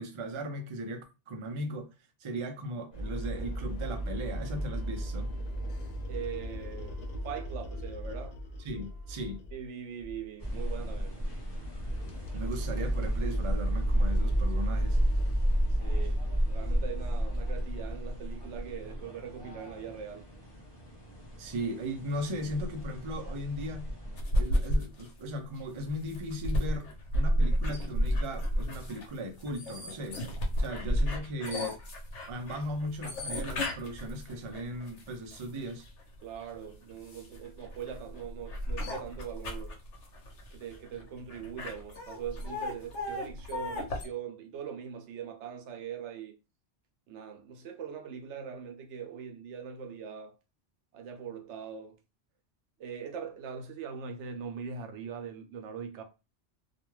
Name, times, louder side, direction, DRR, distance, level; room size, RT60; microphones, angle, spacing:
voice 1, 0.0-1.9 2.2-5.3 8.6-9.4 12.3-15.0 21.4-23.9 24.4-26.9 27.1-30.2 30.6-31.8 32.3-35.9, equal, 45° right, 0.4 m, -37 dB
sound 1, 2.9-9.6 10.0-10.3 10.6-10.8 11.2-18.0, right 1 dB, 55° left, 0.4 m, -35 dB
voice 2, 6.1-8.4 9.5-11.2 15.8-20.3 36.2-39.8 40.5-46.4 47.1-50.4 50.9-52.0 52.8-56.0, right 7 dB, 85° right, 0.9 m, -41 dB
sound 2, 10.4-24.2, equal, 25° left, 0.7 m, -33 dB
sound 3, 24.2-35.9 36.4-44.1, equal, 85° left, 1.0 m, -32 dB
2.4 x 2.2 x 3.0 m
omnidirectional pair, 1.2 m